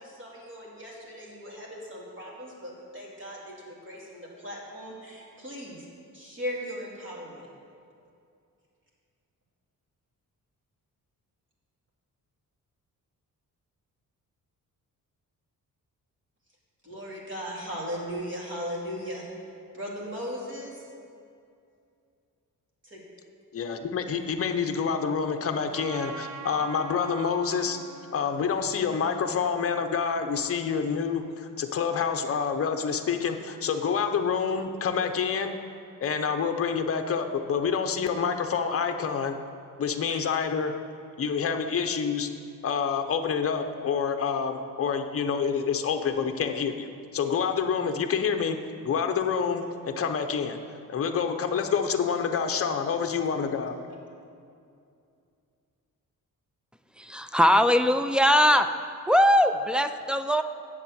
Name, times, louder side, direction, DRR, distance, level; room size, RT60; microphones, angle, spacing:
voice 1, 0.0-5.8 6.1-7.5 16.8-19.2 19.7-20.8 22.8-23.0 40.1-40.2, equal, 35° right, -4 dB, 2.5 m, -38 dB
voice 2, 23.5-27.8 28.1-35.5 36.0-39.4 39.8-40.7 41.2-42.3 42.6-46.9 47.1-48.6 48.8-50.6 50.9-53.7, left 6 dB, 40° left, 6 dB, 0.7 m, -27 dB
Trumpet, 25.7-30.4, right 5 dB, 60° right, 1.1 m, -43 dB
voice 3, 57.0-58.7 59.1-60.4, equal, 5° right, 9 dB, 0.3 m, -21 dB
7.4 x 7.3 x 8.3 m, 2.5 s
wide cardioid pair, 130°, 34 cm